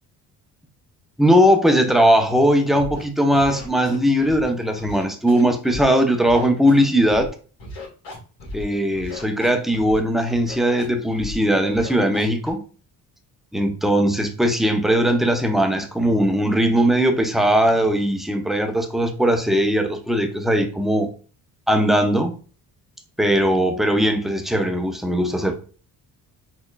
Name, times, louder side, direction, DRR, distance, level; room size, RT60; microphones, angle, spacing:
voice 1, 1.2-7.3 8.5-12.6 13.5-21.1 21.7-22.3 23.2-25.5, equal, ahead, 5 dB, 0.7 m, -19 dB
Scratching (performance technique), 2.7-3.0 3.3-4.4 4.7-5.9 6.2-7.3 7.6-8.6 8.9-10.0 10.3-10.9 11.1-11.4 11.7-12.5, left 2 dB, 85° left, 1.8 m, -36 dB
4.5 x 2.9 x 2.3 m, 0.38 s
supercardioid pair, 60°, 43 cm